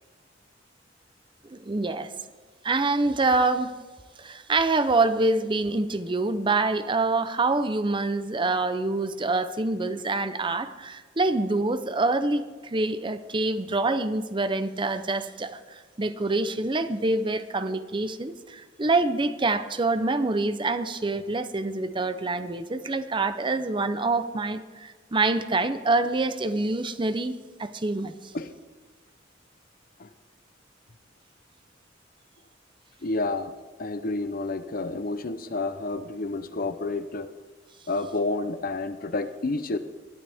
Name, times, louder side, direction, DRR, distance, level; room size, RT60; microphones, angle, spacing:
voice 1, 1.4-2.1 2.6-3.7 4.2-28.1, right 3 dB, 25° right, 11 dB, 0.6 m, -26 dB
voice 2, 33.0-33.5 33.8-37.3 37.9-39.8, left 2 dB, 50° left, 11 dB, 0.7 m, -30 dB
20.0 x 12.5 x 3.5 m, 1.4 s
head